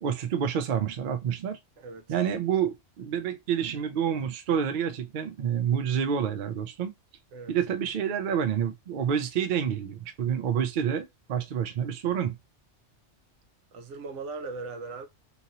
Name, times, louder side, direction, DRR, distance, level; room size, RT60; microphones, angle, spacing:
voice 1, 0.0-1.6 2.1-6.9 7.5-12.4, right 8 dB, 55° right, 0.6 m, -28 dB
voice 2, 13.7-15.1, right 3 dB, 80° right, 0.9 m, -38 dB
2.9 x 2.6 x 2.8 m
omnidirectional pair, 1.2 m